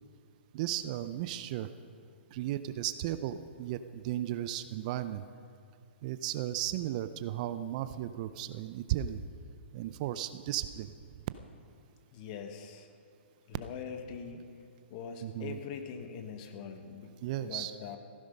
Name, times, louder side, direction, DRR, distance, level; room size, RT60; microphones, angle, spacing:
voice 1, 0.5-1.7 2.3-5.2 6.0-9.2 9.7-10.9 15.2-15.6 17.2-17.7, right 12 dB, 40° right, 12 dB, 0.5 m, -35 dB
voice 2, 12.1-12.9 13.5-14.5 14.9-17.2 17.4-18.0, left 6 dB, 40° left, 6 dB, 1.3 m, -42 dB
15.5 x 10.5 x 5.4 m, 2.3 s
hypercardioid pair, 135°, 6 cm